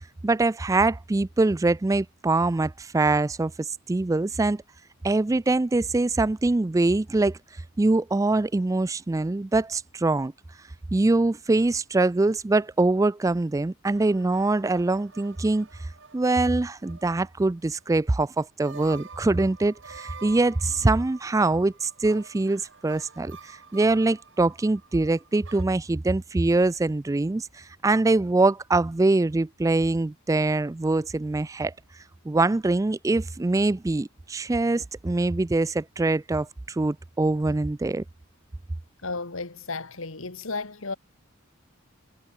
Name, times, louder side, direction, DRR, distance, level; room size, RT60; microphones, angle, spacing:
voice 1, 0.2-4.6 5.0-7.4 7.8-10.3 10.9-15.7 16.1-31.7 32.3-38.0, right 2 dB, 15° right, 0.3 m, -23 dB
sound 1, 13.9-17.5 17.8-17.9 18.6-25.6, right 5 dB, 60° right, 2.2 m, -48 dB
voice 2, 39.0-40.9, left 3 dB, 75° left, 2.0 m, -33 dB
head